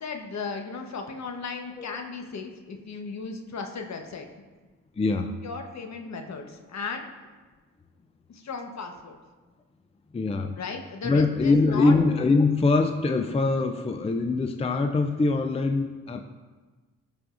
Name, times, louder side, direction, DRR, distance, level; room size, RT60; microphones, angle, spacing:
voice 1, 0.0-4.3 5.4-7.1 8.3-9.2 10.6-11.9, left 4 dB, 50° left, 3 dB, 1.1 m, -36 dB
voice 2, 5.0-5.4 10.1-10.6 11.0-16.3, left 3 dB, 20° left, 5 dB, 0.5 m, -23 dB
14.0 x 5.0 x 2.5 m, 1.3 s
cardioid pair, 70°, 34 cm